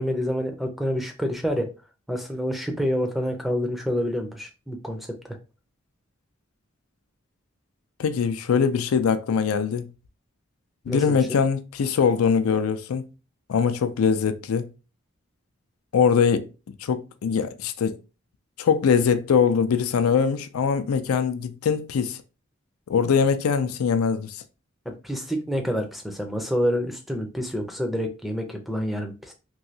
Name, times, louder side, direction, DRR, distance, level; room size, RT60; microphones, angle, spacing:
voice 1, 0.0-1.7 2.1-5.4 10.9-11.2 25.0-29.3, equal, ahead, 0.4 m, -27 dB
voice 2, 8.0-9.9 10.9-13.0 13.5-14.7 15.9-16.5 16.8-18.0 18.6-22.2 22.9-24.4, left 6 dB, 90° left, 0.4 m, -22 dB
3.1 x 2.7 x 2.7 m
head